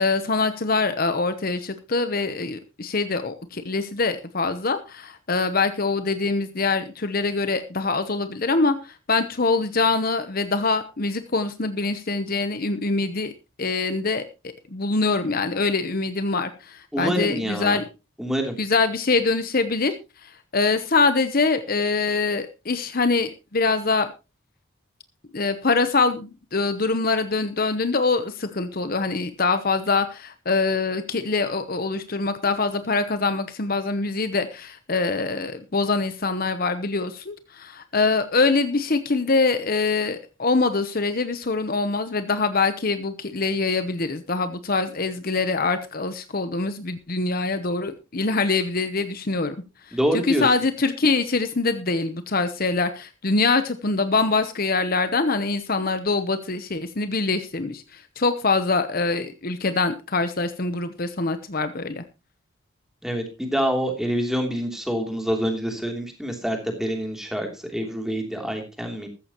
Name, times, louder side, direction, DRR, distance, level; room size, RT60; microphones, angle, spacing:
voice 1, 0.0-13.3 13.6-14.2 14.7-17.8 18.6-19.9 20.2-24.1 25.3-49.6 49.8-62.0, left 3 dB, 45° left, 10 dB, 0.9 m, -24 dB
voice 2, 16.9-17.8 18.2-18.6 49.9-50.5 63.0-69.1, equal, ahead, 3 dB, 3.0 m, -26 dB
14.5 x 14.0 x 3.0 m, 0.29 s
head